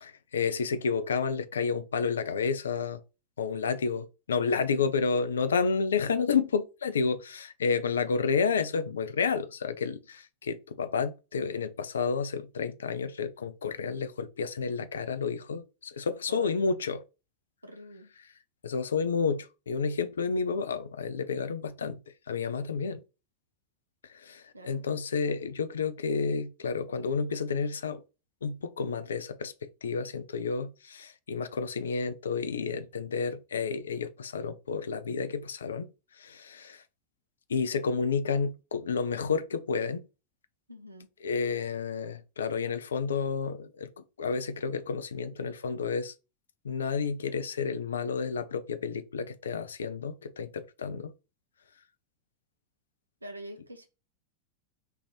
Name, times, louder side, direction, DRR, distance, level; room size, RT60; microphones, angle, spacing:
voice 1, 0.0-3.0 3.4-17.0 18.6-22.0 22.3-23.0 24.1-28.0 28.4-29.5 29.8-35.9 36.2-36.8 37.5-40.0 41.2-46.1 46.6-51.1, left 5 dB, 70° left, 0.4 m, -30 dB
voice 2, 16.3-16.6 17.6-18.1 24.5-24.8 40.7-41.1 53.2-53.9, right 1 dB, 80° right, 0.5 m, -45 dB
3.4 x 2.5 x 4.5 m
figure-of-eight pair, 90°, 0 cm